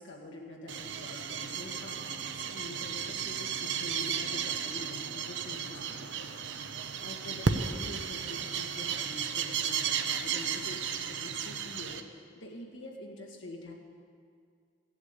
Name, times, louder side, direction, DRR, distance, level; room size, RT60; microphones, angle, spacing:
voice 1, 0.0-6.3 6.5-6.7 7.0-13.7, left 2 dB, 80° left, 0 dB, 2.1 m, -45 dB
sound 1, 0.7-12.0, right 7 dB, 70° right, 0.7 m, -34 dB
15.5 x 8.0 x 8.1 m, 2.2 s
head